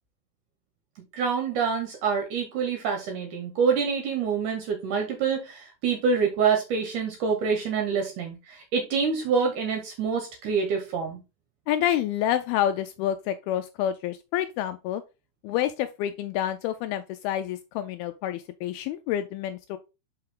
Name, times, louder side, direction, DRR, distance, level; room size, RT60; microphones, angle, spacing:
voice 1, 1.1-11.2, right 6 dB, 65° right, 2.2 m, -26 dB
voice 2, 11.7-15.0 15.4-19.8, left 11 dB, 85° left, 2.3 m, -28 dB
5.7 x 5.6 x 3.7 m
omnidirectional pair, 4.7 m